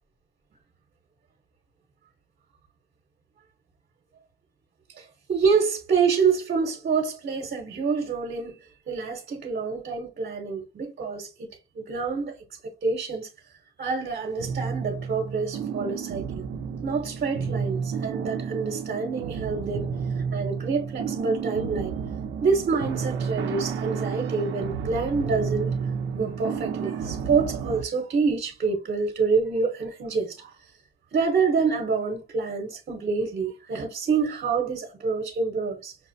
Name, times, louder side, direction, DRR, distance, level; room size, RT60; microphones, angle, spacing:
voice 1, 5.0-8.6 8.9-11.3 11.7-12.4 12.8-13.3 13.8-16.4 16.8-19.9 20.3-21.9 22.4-25.7 26.1-30.5 31.1-35.9, right 5 dB, 50° right, 1.1 m, -27 dB
sound 1, 14.4-27.8, right 6 dB, 75° right, 0.6 m, -31 dB
6.0 x 2.0 x 2.7 m
cardioid pair, 90°, 20 cm